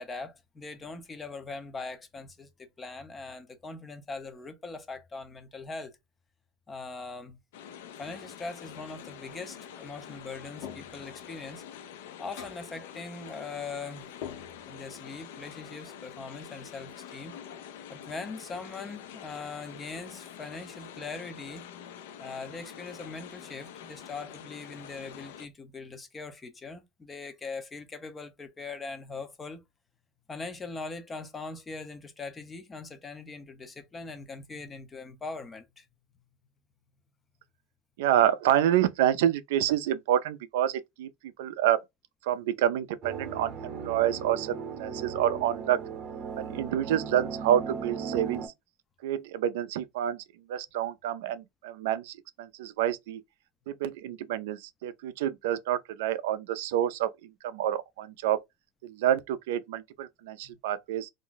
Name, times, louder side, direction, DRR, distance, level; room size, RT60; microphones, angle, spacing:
voice 1, 0.0-5.9 6.7-7.4 8.0-11.6 12.2-14.1 14.7-17.3 17.9-21.6 22.2-29.6 30.3-35.9 60.4-60.6, left 4 dB, 15° left, 0.4 m, -41 dB
sound 1, 7.5-25.5, left 9 dB, 90° left, 0.4 m, -46 dB
sound 2, 10.6-11.2 12.4-12.8 14.2-14.9, left 9 dB, 60° left, 0.7 m, -43 dB
voice 2, 38.0-41.1 41.4-41.8 42.2-43.5 43.8-45.8 46.4-48.5 49.0-50.2 50.5-53.2 53.7-57.1 57.4-58.4 58.8-61.1, right 11 dB, 80° right, 0.3 m, -28 dB
sound 3, 43.0-48.5, right 6 dB, 35° right, 0.7 m, -37 dB
2.4 x 2.0 x 3.8 m
supercardioid pair, 165°, 0 cm